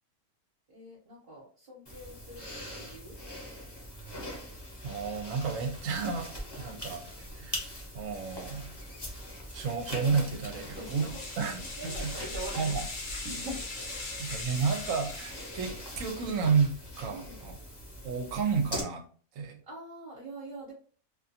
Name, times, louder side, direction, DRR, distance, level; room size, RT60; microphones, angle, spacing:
voice 1, 0.7-3.2 6.6-6.9 10.5-11.3 11.6-12.8 13.9-14.2 17.1-17.5 19.7-20.7, right 2 dB, 45° right, -5 dB, 1.0 m, -45 dB
sound 1, 1.9-18.8, left 1 dB, 25° left, 0.7 m, -43 dB
voice 2, 4.8-6.3 6.5-7.0 7.4-8.7 9.5-11.0 11.4-12.3 12.6-12.8 13.2-13.6 14.2-17.6 18.0-19.0 19.3-19.6, right 5 dB, 75° right, 6 dB, 1.0 m, -31 dB
sound 2, 10.5-16.1, left 2 dB, 55° left, 0.9 m, -40 dB
2.5 x 2.4 x 2.7 m, 0.42 s
omnidirectional pair, 1.5 m